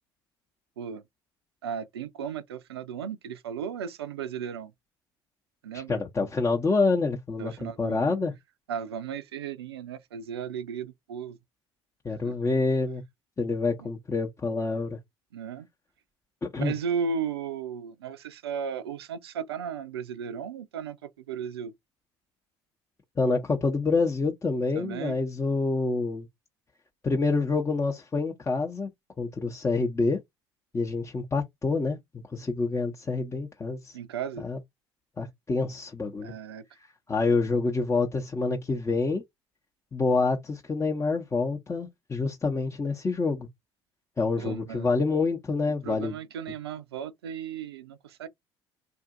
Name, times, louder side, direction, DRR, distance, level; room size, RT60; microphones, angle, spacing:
voice 1, 1.6-4.7 5.6-6.0 7.4-8.2 8.7-11.4 12.2-12.3 15.3-15.7 16.6-21.7 24.8-25.2 33.9-34.5 36.2-36.6 44.4-44.9 45.7-48.3, right 7 dB, 80° right, 0.4 m, -35 dB
voice 2, 5.7-8.3 12.0-13.0 13.4-15.0 16.4-16.7 23.2-26.3 27.0-28.9 29.2-30.2 30.7-32.0 32.3-34.0 34.4-34.6 35.2-36.3 37.1-39.2 39.9-43.5 44.2-46.2, left 3 dB, 20° left, 0.7 m, -27 dB
3.7 x 2.5 x 2.5 m
figure-of-eight pair, 55°, 13 cm